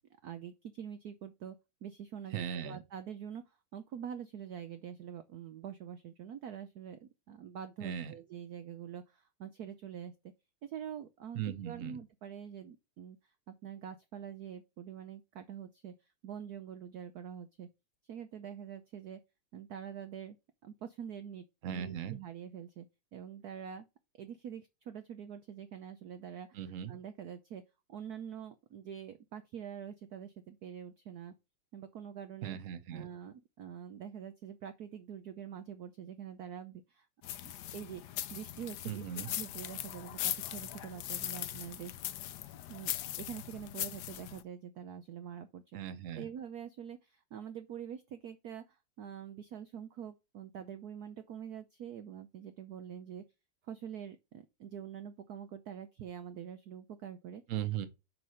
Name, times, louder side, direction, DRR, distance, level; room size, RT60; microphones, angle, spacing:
voice 1, 0.2-1.6 1.8-3.4 3.7-10.1 10.6-13.2 13.5-15.9 16.2-17.7 18.1-19.2 19.5-20.4 20.6-22.9 23.1-23.9 24.2-26.6 26.9-27.6 27.9-31.3 31.7-32.6 32.9-37.1 37.4-42.0 42.7-45.6 46.2-53.2 53.7-57.4, right 8 dB, 85° right, 0.8 m, -45 dB
voice 2, 2.3-2.8 7.8-8.1 11.3-12.0 21.6-22.2 26.5-26.9 32.4-33.1 38.8-39.3 45.7-46.3 57.5-57.9, right 10 dB, 55° right, 0.9 m, -38 dB
sound 1, 37.2-44.4, left 12 dB, 80° left, 0.9 m, -40 dB
5.4 x 4.7 x 6.3 m
omnidirectional pair, 2.4 m